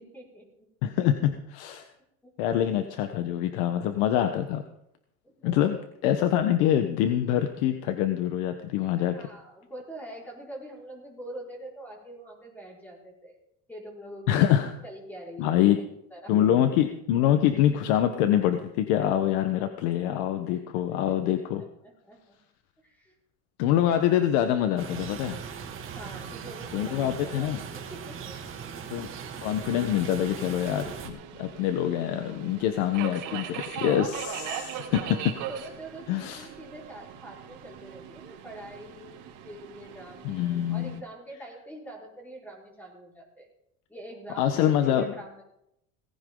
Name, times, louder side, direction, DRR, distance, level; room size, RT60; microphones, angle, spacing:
voice 1, 0.0-0.7 2.2-2.3 5.2-5.8 9.0-13.3 13.7-15.8 16.1-16.6 19.1-19.2 19.8-20.1 20.5-20.6 20.9-22.4 22.8-23.1 23.8-24.3 25.9-28.6 35.5-43.5 43.9-45.4, right 1 dB, 5° left, -3 dB, 5.4 m, -45 dB
voice 2, 0.8-1.8 2.4-4.6 5.4-5.8 6.0-9.1 14.3-14.7 15.4-15.8 16.3-21.6 23.6-25.4 26.7-27.6 28.9-29.1 29.4-35.3 36.1-36.5 40.2-40.9 44.4-45.1, left 11 dB, 90° left, 8 dB, 1.3 m, -25 dB
sound 1, 24.8-31.1, right 7 dB, 35° right, 2.5 m, -39 dB
Subway metro underground, 29.5-41.0, right 9 dB, 65° right, 4.0 m, -40 dB
18.5 x 15.5 x 3.9 m, 0.78 s
cardioid pair, 150°, 34 cm